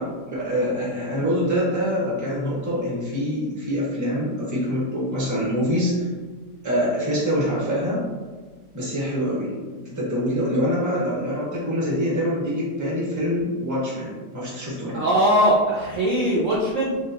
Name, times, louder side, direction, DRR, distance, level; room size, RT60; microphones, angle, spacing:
voice 1, 0.0-6.1 6.6-8.0 8.7-15.0, equal, 15° right, -7 dB, 0.9 m, -25 dB
voice 2, 14.9-17.0, equal, 60° right, -6 dB, 0.8 m, -20 dB
3.5 x 3.2 x 2.8 m, 1.4 s
omnidirectional pair, 1.8 m